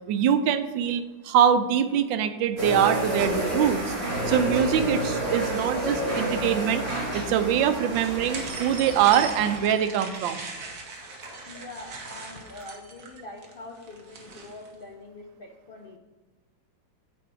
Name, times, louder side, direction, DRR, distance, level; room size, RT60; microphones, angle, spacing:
voice 1, 0.1-3.9 4.3-6.8 7.1-10.5, right 9 dB, 80° right, 10 dB, 1.3 m, -23 dB
sound 1, 2.6-9.6, right 1 dB, 35° right, 1.6 m, -29 dB
sound 2, 5.4-12.7, equal, 20° right, 2.5 m, -48 dB
sound 3, 7.8-14.7, right 4 dB, 50° right, 1.3 m, -39 dB
voice 2, 11.4-16.0, left 2 dB, 70° left, 1 dB, 0.5 m, -43 dB
8.7 x 4.4 x 4.7 m, 1.2 s
omnidirectional pair, 2.0 m